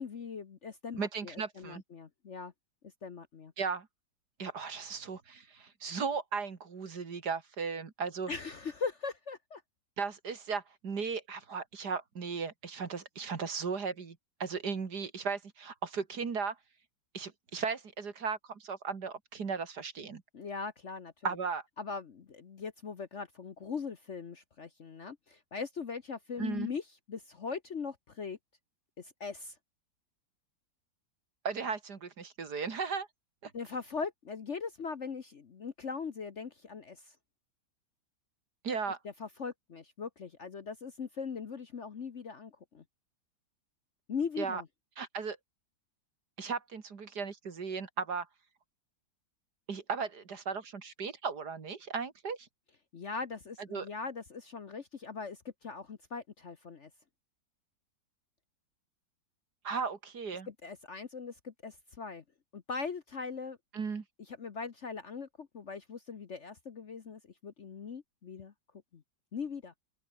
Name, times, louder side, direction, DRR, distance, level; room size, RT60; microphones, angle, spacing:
voice 1, 0.0-2.5 3.0-3.5 8.3-9.6 20.3-21.1 21.8-26.8 27.1-28.4 29.0-29.5 33.5-37.1 38.7-38.8 39.0-42.8 44.1-44.7 52.9-56.9 60.5-62.2 62.5-63.6 64.3-68.5 68.9-69.0 69.3-69.7, left 5 dB, 45° left, 1.2 m, -40 dB
voice 2, 1.0-1.8 3.6-3.9 4.4-8.3 10.0-16.6 17.1-20.2 21.2-21.6 26.4-26.7 31.4-33.1 33.4-33.5 38.6-39.0 44.4-44.6 45.0-45.4 46.4-48.3 49.7-52.4 53.7-53.9 59.6-60.5 63.7-64.0, right 5 dB, 60° right, 2.7 m, -36 dB
open air
omnidirectional pair, 2.0 m